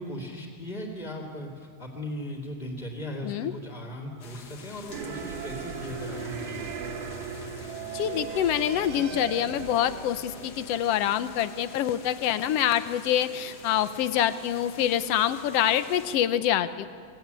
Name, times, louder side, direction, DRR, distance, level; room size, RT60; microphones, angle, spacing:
voice 1, 0.0-6.8, left 1 dB, 15° left, -1 dB, 2.7 m, -38 dB
sound 1, 4.2-16.2, left 5 dB, 50° left, 1.2 m, -48 dB
sound 2, 4.9-11.7, right 6 dB, 75° right, 2.9 m, -38 dB
voice 2, 7.9-16.9, left 10 dB, 70° left, 12 dB, 1.5 m, -26 dB
28.0 x 21.0 x 9.1 m, 2.2 s
omnidirectional pair, 3.8 m